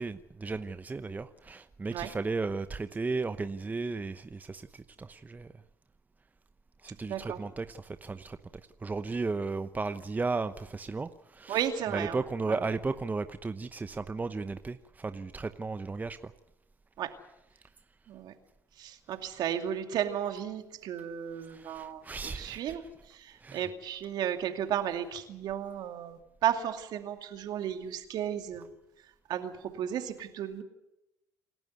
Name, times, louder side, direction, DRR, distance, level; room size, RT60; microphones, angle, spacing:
voice 1, 0.0-5.5 6.8-16.3 21.3-22.8 23.4-23.7, right 3 dB, 20° right, 11 dB, 0.9 m, -35 dB
voice 2, 7.1-7.4 11.5-12.2 12.5-12.6 17.0-17.1 18.1-18.3 18.8-22.8 23.1-28.7 29.3-30.6, right 10 dB, 60° right, 6 dB, 2.6 m, -34 dB
28.0 x 12.5 x 9.6 m, 0.88 s
hypercardioid pair, 70°, 8 cm